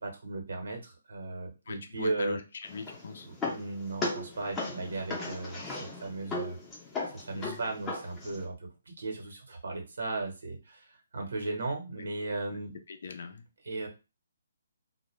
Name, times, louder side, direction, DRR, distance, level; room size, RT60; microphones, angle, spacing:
voice 1, 0.0-2.4 3.3-6.6 7.1-12.7 13.6-13.9, right 3 dB, 70° right, 2 dB, 1.0 m, -36 dB
voice 2, 1.7-3.3 7.3-7.6 12.0-12.1 12.5-12.6 12.9-13.5, left 4 dB, 65° left, 6 dB, 0.5 m, -41 dB
sound 1, 2.6-8.4, left 3 dB, 15° left, 0.7 m, -37 dB
2.2 x 2.2 x 3.1 m, 0.30 s
hypercardioid pair, 150°, 0 cm